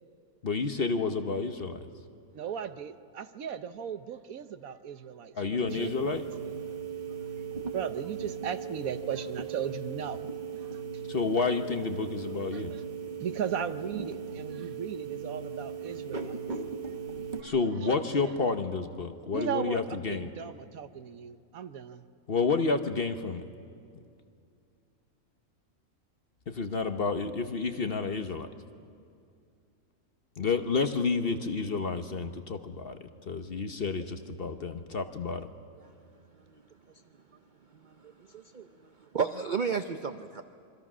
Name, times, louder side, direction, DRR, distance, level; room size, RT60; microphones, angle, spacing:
voice 1, 0.4-1.9 5.4-6.2 11.1-12.7 17.4-20.3 22.3-23.4 26.5-28.5 30.4-35.5, left 4 dB, 45° left, 8 dB, 1.0 m, -30 dB
voice 2, 2.3-5.9 6.7-6.8 7.2-7.3 7.7-10.2 10.6-11.0 12.5-12.8 13.2-16.4 17.4-17.5 19.3-22.0, right 8 dB, 65° right, 11 dB, 1.2 m, -37 dB
sound 1, 5.7-17.4, right 6 dB, 30° right, 1.4 m, -38 dB
voice 3, 37.7-40.4, right 5 dB, 50° right, 9 dB, 0.6 m, -34 dB
27.0 x 24.0 x 6.2 m, 2.4 s
omnidirectional pair, 1.6 m